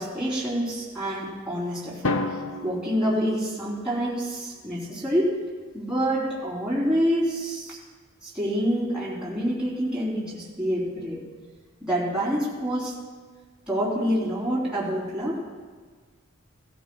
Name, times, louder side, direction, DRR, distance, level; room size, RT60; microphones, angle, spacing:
voice 1, 0.0-2.1 2.6-5.3 5.7-7.8 8.2-11.2 11.8-12.9 13.7-15.4, equal, 5° right, -8 dB, 3.5 m, -27 dB
Drum, 2.0-4.1, left 2 dB, 75° left, 0.8 m, -31 dB
18.0 x 14.0 x 2.3 m, 1.5 s
head